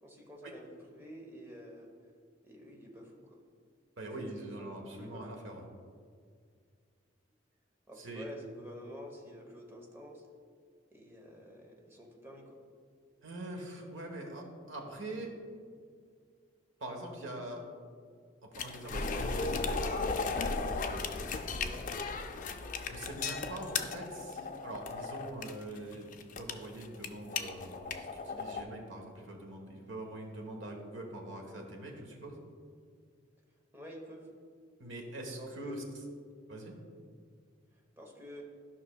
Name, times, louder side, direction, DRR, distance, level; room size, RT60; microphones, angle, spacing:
voice 1, 0.0-1.9 2.4-3.4 4.2-5.3 7.9-10.2 10.9-12.6 21.6-21.9 33.7-34.3 35.4-35.8 38.0-38.4, equal, 15° right, 0 dB, 0.9 m, -49 dB
voice 2, 4.0-5.6 8.0-8.3 13.2-15.3 16.8-17.6 18.6-20.2 22.8-32.4 34.8-36.0 36.5-36.7, right 1 dB, 85° right, 1 dB, 1.2 m, -43 dB
sound 1, 18.5-28.6, left 4 dB, 40° left, 0.4 m, -36 dB
12.5 x 5.6 x 2.3 m, 2.1 s
head